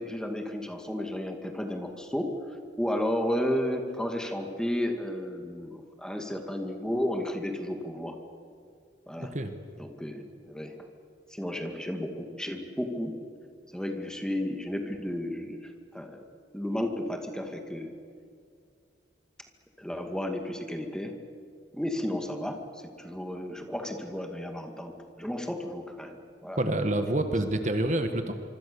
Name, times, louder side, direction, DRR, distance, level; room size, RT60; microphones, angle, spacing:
voice 1, 0.0-2.4 2.8-8.2 9.1-9.3 9.8-10.8 11.3-13.2 13.7-16.3 16.5-17.9 19.8-21.1 21.7-26.6, left 1 dB, 5° left, 4 dB, 2.2 m, -33 dB
voice 2, 9.2-9.5 26.6-28.3, right 1 dB, 40° right, 7 dB, 1.5 m, -27 dB
26.0 x 25.0 x 7.0 m, 2.3 s
head